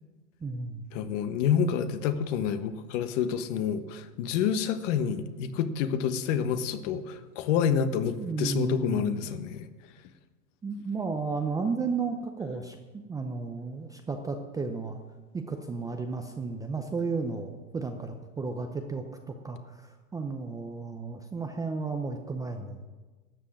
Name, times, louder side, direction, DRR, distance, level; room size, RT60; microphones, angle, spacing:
voice 1, 0.4-0.8 8.2-9.2 10.6-15.0 15.3-22.8, right 4 dB, 10° right, 4 dB, 0.5 m, -33 dB
voice 2, 0.9-9.7, left 8 dB, 50° left, 10 dB, 1.3 m, -28 dB
12.5 x 7.6 x 8.5 m, 1.3 s
hypercardioid pair, 120°, 46 cm